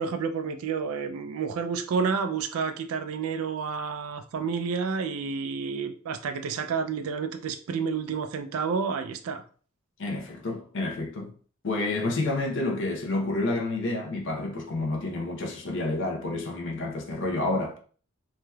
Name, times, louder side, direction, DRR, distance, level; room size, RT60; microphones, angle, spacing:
voice 1, 0.0-9.4, right 5 dB, 80° right, 0.3 m, -30 dB
voice 2, 10.0-11.3 11.6-17.8, left 2 dB, 60° left, 0.7 m, -29 dB
3.3 x 2.8 x 2.2 m
head